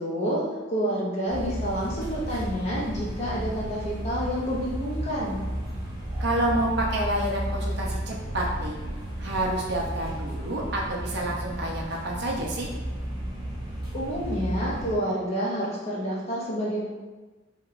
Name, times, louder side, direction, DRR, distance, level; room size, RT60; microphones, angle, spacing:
voice 1, 0.0-5.5 13.9-16.9, equal, 35° left, -5 dB, 0.5 m, -29 dB
sound 1, 1.3-14.9, right 1 dB, 20° right, 0.7 m, -33 dB
voice 2, 6.2-8.8 9.2-12.7, right 1 dB, 55° right, -2 dB, 0.5 m, -28 dB
2.9 x 2.8 x 2.4 m, 1.2 s
head